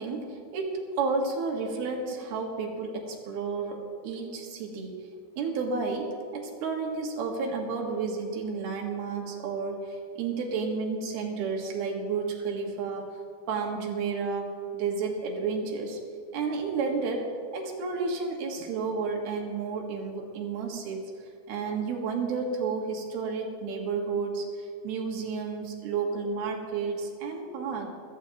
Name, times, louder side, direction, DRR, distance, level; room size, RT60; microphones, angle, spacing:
voice 1, 0.0-5.1 5.4-13.2 13.5-16.0 16.3-21.0 21.5-27.9, right 4 dB, 90° right, 1 dB, 3.5 m, -31 dB
23.0 x 14.5 x 2.9 m, 2.4 s
omnidirectional pair, 4.3 m